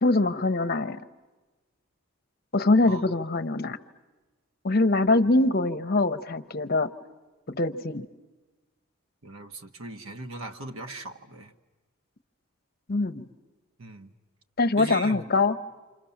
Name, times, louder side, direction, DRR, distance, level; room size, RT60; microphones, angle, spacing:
voice 1, 0.0-1.0 2.5-3.8 4.6-6.9 7.5-8.1 12.9-13.2 14.6-15.5, left 2 dB, 45° left, 10 dB, 0.8 m, -23 dB
voice 2, 9.2-11.5 13.8-14.1 14.8-15.2, right 2 dB, 70° right, 6 dB, 1.3 m, -39 dB
28.5 x 26.0 x 7.2 m, 1.2 s
head